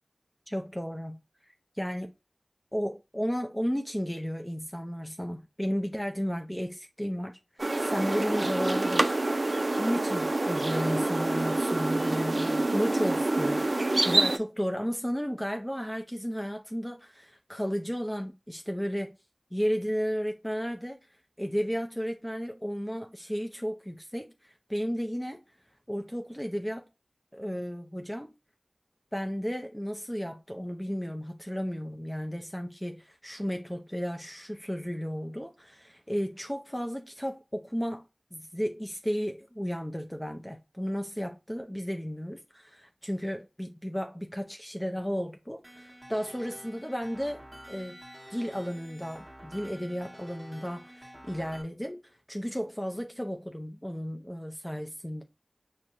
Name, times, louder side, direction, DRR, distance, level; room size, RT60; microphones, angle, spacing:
voice 1, 0.5-1.2 1.8-2.1 2.7-7.3 7.8-9.2 9.8-19.1 19.5-21.0 21.4-25.4 25.9-26.9 27.3-28.3 29.1-38.0 38.3-48.0 48.3-52.0 52.3-55.2, equal, 10° left, 0.5 m, -33 dB
sound 1, 7.6-14.4, right 2 dB, 60° right, 0.4 m, -27 dB
sound 2, 45.6-51.6, equal, 10° right, 1.2 m, -49 dB
6.0 x 2.1 x 2.4 m
wide cardioid pair, 50°, 0 cm